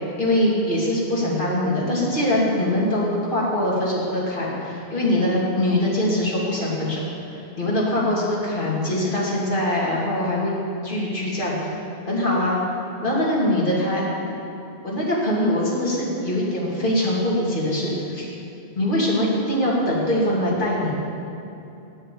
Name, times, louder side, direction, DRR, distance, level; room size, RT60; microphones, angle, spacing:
voice 1, 0.2-7.0 7.6-10.5 10.8-11.7 12.1-12.6 13.0-14.0 14.8-18.3 18.8-20.9, left 1 dB, 50° left, -6 dB, 2.8 m, -22 dB
9.9 x 9.0 x 8.5 m, 2.8 s
omnidirectional pair, 1.1 m